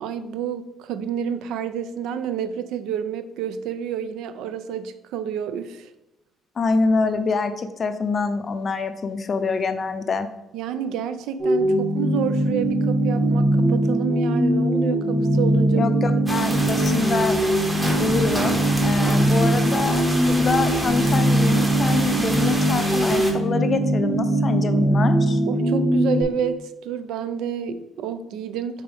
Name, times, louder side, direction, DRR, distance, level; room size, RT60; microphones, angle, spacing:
voice 1, 0.0-5.9 10.5-16.0 16.3-17.1 25.5-28.8, right 8 dB, 85° right, 12 dB, 0.5 m, -29 dB
voice 2, 6.6-10.3 15.7-17.4 18.0-25.4, left 4 dB, 30° left, 9 dB, 0.4 m, -25 dB
sound 1, 11.4-26.2, right 1 dB, 40° right, 2.0 m, -21 dB
sound 2, 16.3-23.3, right 1 dB, 10° right, 0.8 m, -29 dB
6.9 x 4.4 x 3.4 m, 0.94 s
cardioid pair, 170°, 0 cm